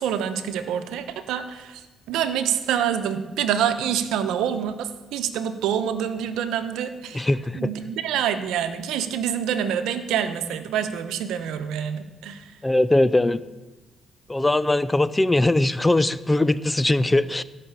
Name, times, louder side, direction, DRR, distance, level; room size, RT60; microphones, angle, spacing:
voice 1, 0.0-12.5, right 9 dB, 90° right, 9 dB, 0.9 m, -27 dB
voice 2, 7.1-7.7 12.6-13.4 14.3-17.4, left 2 dB, 15° left, 17 dB, 0.5 m, -20 dB
15.0 x 6.0 x 8.2 m, 1.1 s
cardioid pair, 90°, 0 cm